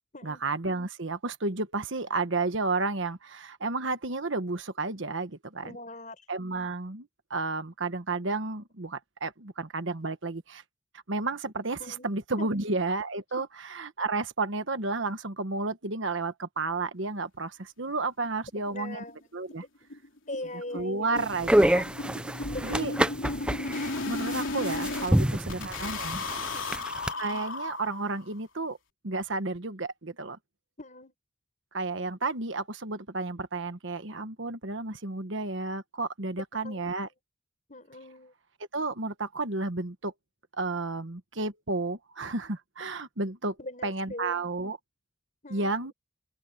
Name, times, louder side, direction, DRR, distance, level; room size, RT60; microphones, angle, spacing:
voice 1, 0.2-5.8 6.3-10.6 11.1-19.0 19.3-19.6 20.7-21.9 22.6-22.9 24.0-26.2 27.2-28.8 29.0-30.4 31.7-37.1 38.7-40.1 40.6-43.6 43.8-44.8 45.5-45.9, right 3 dB, 65° right, 1.3 m, -32 dB
voice 2, 5.6-6.3 11.8-12.1 12.4-12.7 13.4-13.5 18.7-19.3 20.3-21.3 22.5-23.2 25.1-25.5 26.5-26.9 30.8-31.1 36.6-37.0 37.7-38.3 43.6-44.4 45.4-45.9, left 1 dB, 35° left, 5.7 m, -41 dB
sound 1, 18.3-18.4 18.7-18.8 19.1-19.2 19.5-19.6 19.9-25.1 25.5-28.3, left 2 dB, 70° left, 3.6 m, -35 dB
sound 2, 21.2-27.1, right 1 dB, 5° right, 0.4 m, -27 dB
open air
head